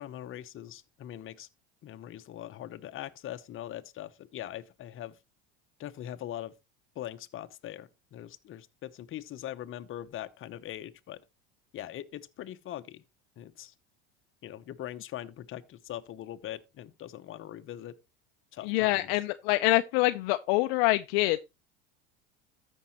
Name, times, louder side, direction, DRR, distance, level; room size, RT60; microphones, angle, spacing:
voice 1, 0.0-1.5 1.8-5.1 5.8-6.5 7.0-11.2 11.7-13.0 13.4-13.7 14.4-17.9 18.5-19.2, left 12 dB, 40° left, 0.9 m, -41 dB
voice 2, 18.6-21.4, left 19 dB, 65° left, 0.6 m, -25 dB
14.0 x 5.5 x 3.0 m
hypercardioid pair, 90°, 33 cm